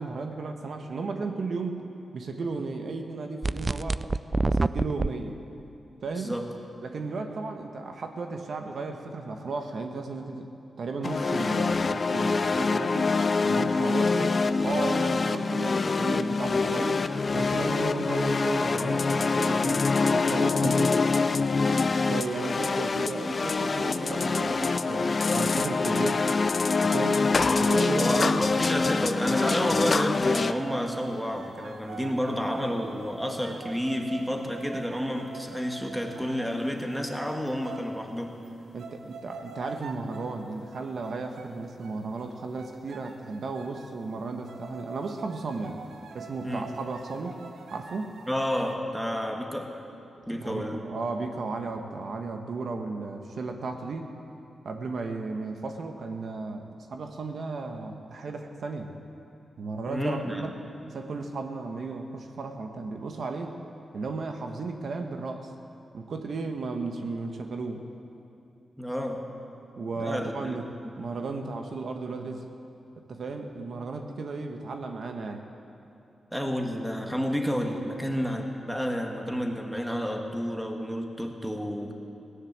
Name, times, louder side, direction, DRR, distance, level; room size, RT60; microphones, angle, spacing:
voice 1, 0.0-1.8 2.1-4.0 4.5-5.4 6.0-6.3 6.8-10.5 10.8-13.1 13.4-17.1 17.3-21.0 22.1-26.2 26.8-27.2 27.6-28.4 38.7-45.8 46.1-47.4 47.7-48.2 50.4-54.1 54.6-58.9 59.6-60.5 60.9-63.6 63.9-65.5 65.9-67.8 69.8-70.7 71.0-72.5 73.1-75.4, right 3 dB, 65° right, 4 dB, 1.2 m, -34 dB
sound 1, 3.4-5.1, right 3 dB, 30° right, 0.3 m, -26 dB
sound 2, 11.0-30.5, left 4 dB, 40° left, 0.4 m, -25 dB
voice 2, 27.3-27.7 28.0-38.4 46.4-46.8 48.3-49.8 50.3-50.9 59.9-60.5 68.8-69.3 70.0-70.6 76.3-81.9, equal, ahead, 3 dB, 1.5 m, -30 dB
sound 3, 29.2-29.6 29.9-38.0 38.4-38.5 38.8-40.4 40.7-41.5 41.8-42.3 42.6-43.9 44.5-48.8, right 4 dB, 90° right, 1.0 m, -44 dB
17.0 x 10.0 x 7.3 m, 2.7 s
cardioid pair, 90°, 0 cm